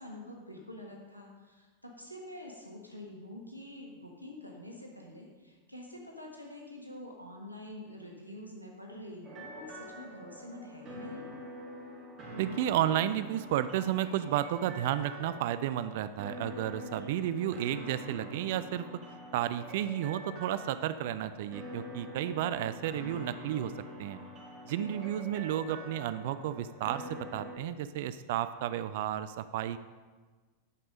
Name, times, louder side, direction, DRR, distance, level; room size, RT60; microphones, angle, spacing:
voice 1, 0.0-11.2 16.8-17.2 24.7-25.1, left 1 dB, 90° left, -1 dB, 1.4 m, -47 dB
sound 1, 9.2-27.6, equal, 25° right, 3.1 m, -45 dB
voice 2, 12.4-18.9 19.3-23.7 24.0-24.2 24.7-29.8, right 11 dB, 50° right, 13 dB, 0.3 m, -32 dB
10.5 x 5.4 x 5.2 m, 1.4 s
figure-of-eight pair, 90°, 0 cm